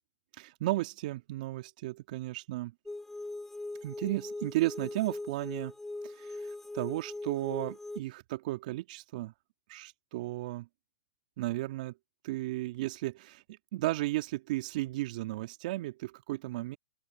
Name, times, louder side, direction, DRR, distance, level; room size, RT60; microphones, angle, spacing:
voice 1, 0.3-2.7 3.8-5.7 6.0-9.3 9.7-10.7 11.4-11.9 12.2-16.8, right 17 dB, 50° right, 2.3 m, -34 dB
sound 1, 2.9-8.0, left 2 dB, 5° left, 0.8 m, -41 dB
hypercardioid pair, 130°, 6 cm